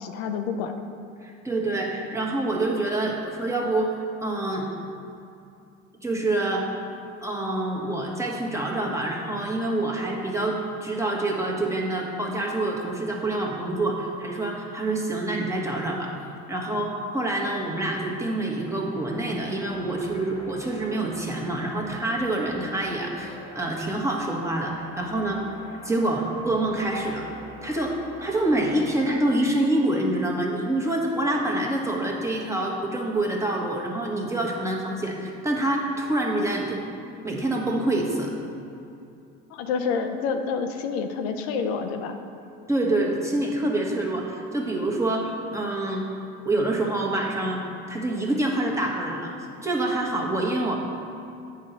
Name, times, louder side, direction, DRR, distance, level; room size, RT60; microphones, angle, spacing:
voice 1, 0.0-0.7 39.5-42.2, left 5 dB, 80° left, 6 dB, 0.6 m, -28 dB
voice 2, 1.2-4.7 6.0-6.7 7.2-16.1 16.5-25.4 25.8-27.3 27.6-36.8 37.2-38.3 42.7-46.0 46.4-47.6 47.9-49.3 49.6-50.7, right 2 dB, 10° right, -2 dB, 1.3 m, -26 dB
sound 1, 18.1-29.2, left 1 dB, 15° left, 1.3 m, -45 dB
8.7 x 3.8 x 5.7 m, 2.6 s
supercardioid pair, 80°, 31 cm